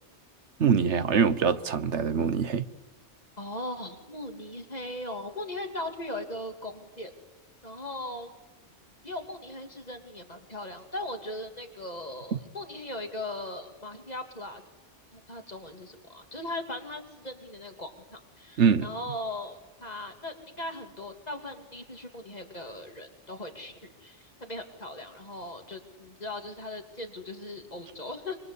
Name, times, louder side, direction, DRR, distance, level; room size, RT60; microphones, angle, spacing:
voice 1, 0.6-2.7 12.3-12.4 18.6-18.9, right 6 dB, 75° right, 1.3 m, -23 dB
voice 2, 3.4-7.1 7.6-8.3 9.0-14.6 15.1-28.4, left 1 dB, 35° left, 3.0 m, -39 dB
25.5 x 25.5 x 8.4 m
omnidirectional pair, 1.2 m